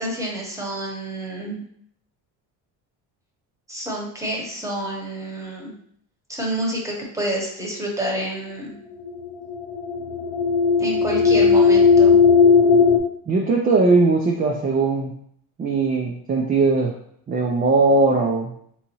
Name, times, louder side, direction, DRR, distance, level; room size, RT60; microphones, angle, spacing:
voice 1, 0.0-1.6 3.7-5.7 6.3-8.7 10.8-12.1, right 1 dB, 5° right, -2 dB, 1.0 m, -28 dB
sound 1, 9.1-13.0, left 5 dB, 65° left, 0.7 m, -16 dB
voice 2, 13.3-15.1 15.6-16.9 17.3-18.5, right 3 dB, 20° right, 0 dB, 0.3 m, -19 dB
3.5 x 2.8 x 3.0 m, 0.67 s
supercardioid pair, 90°, 46 cm